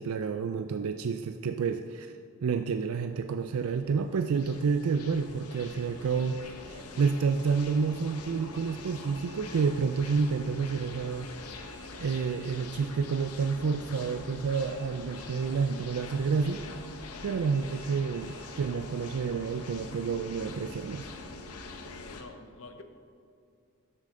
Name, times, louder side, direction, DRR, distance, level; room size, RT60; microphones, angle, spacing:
voice 1, 0.0-2.1 2.4-11.6 12.0-16.6 17.2-21.1, right 5 dB, 75° right, 8 dB, 0.4 m, -29 dB
sound 1, 3.1-22.2, left 3 dB, 85° left, 1.0 m, -44 dB
sound 2, 5.5-6.5 8.5-9.5 11.5-12.5 14.5-15.5 17.5-18.5, equal, 20° left, 1.1 m, -56 dB
voice 2, 21.8-22.8, left 3 dB, 60° left, 7 dB, 0.8 m, -47 dB
12.5 x 7.5 x 3.8 m, 2.5 s
head